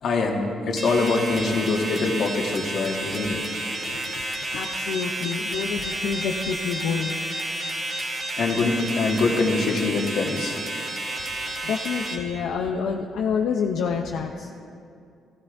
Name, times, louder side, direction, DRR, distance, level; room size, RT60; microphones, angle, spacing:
voice 1, 0.0-3.4 8.4-10.6, left 3 dB, 60° left, 0 dB, 1.7 m, -24 dB
sound 1, 0.8-12.1, right 1 dB, 40° right, 2.2 m, -31 dB
voice 2, 3.8-4.2 4.5-7.2 11.5-14.5, left 6 dB, 80° left, 1 dB, 0.6 m, -28 dB
16.0 x 15.0 x 2.6 m, 2.4 s
cardioid pair, 105°, 0 cm